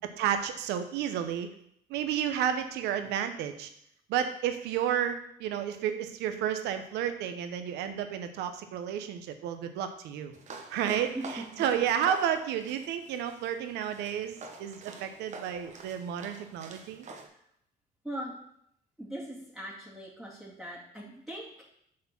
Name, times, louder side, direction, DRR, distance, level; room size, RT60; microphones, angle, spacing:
voice 1, 0.2-1.5 1.9-3.7 4.1-10.3 10.7-17.0, right 9 dB, 85° right, 8 dB, 0.9 m, -31 dB
sound 1, 10.3-17.3, right 3 dB, 45° right, 1.1 m, -46 dB
voice 2, 19.0-21.6, right 1 dB, ahead, -7 dB, 2.3 m, -40 dB
7.5 x 4.4 x 5.9 m, 0.72 s
cardioid pair, 110°, 17 cm